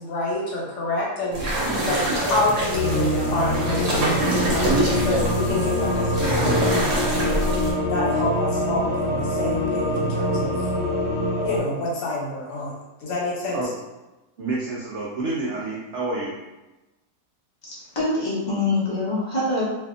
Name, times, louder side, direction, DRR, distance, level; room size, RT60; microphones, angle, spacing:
voice 1, 0.0-4.0 4.3-7.4 7.9-10.6 11.4-13.6, left 2 dB, 80° left, -4 dB, 1.3 m, -28 dB
sound 1, 1.3-7.7, right 1 dB, 60° right, 0.9 m, -25 dB
sound 2, 2.7-11.6, left 1 dB, 50° left, 1.0 m, -24 dB
voice 2, 14.4-16.4, right 2 dB, 80° right, -5 dB, 0.6 m, -28 dB
voice 3, 17.7-19.6, left 2 dB, 30° left, -8 dB, 0.5 m, -24 dB
2.7 x 2.6 x 2.4 m, 1.0 s
omnidirectional pair, 1.8 m